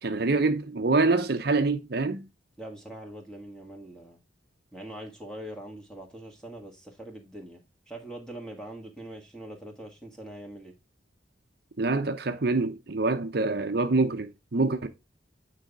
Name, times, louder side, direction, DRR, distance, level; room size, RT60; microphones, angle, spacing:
voice 1, 0.0-2.3 11.8-14.9, right 3 dB, 55° right, 0.7 m, -25 dB
voice 2, 2.6-4.2 4.7-7.6 7.9-10.8, right 1 dB, 5° left, 1.7 m, -42 dB
9.1 x 4.1 x 3.5 m
head